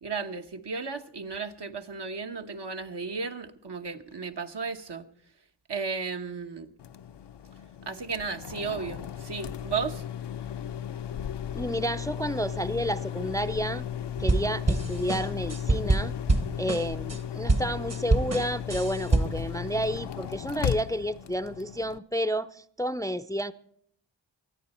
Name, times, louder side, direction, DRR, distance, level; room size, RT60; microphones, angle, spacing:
voice 1, 0.0-5.0 5.7-6.7 7.9-10.0, right 5 dB, 65° right, 1.2 m, -34 dB
sound 1, 6.8-22.0, left 9 dB, 65° left, 0.6 m, -36 dB
voice 2, 11.5-13.8 14.2-16.1 16.6-23.5, equal, 10° left, 0.5 m, -30 dB
sound 2, 14.2-17.2 17.5-19.5, right 3 dB, 35° right, 1.1 m, -26 dB
24.5 x 9.0 x 4.3 m
cardioid pair, 50°, 44 cm